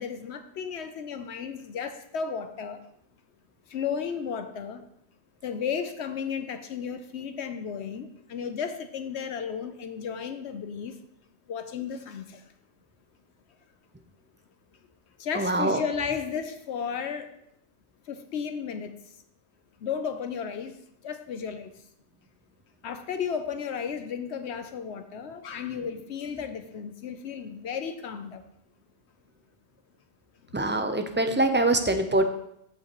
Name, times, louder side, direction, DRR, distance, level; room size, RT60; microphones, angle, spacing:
voice 1, 0.0-2.8 3.7-4.8 5.4-10.9 11.5-12.4 15.2-17.3 18.1-18.9 19.8-20.8 21.0-21.7 22.8-28.4, left 7 dB, 75° left, 8 dB, 0.9 m, -33 dB
voice 2, 15.3-15.8 30.5-32.2, right 2 dB, 15° right, 7 dB, 0.5 m, -24 dB
14.0 x 5.6 x 3.0 m, 0.76 s
omnidirectional pair, 1.2 m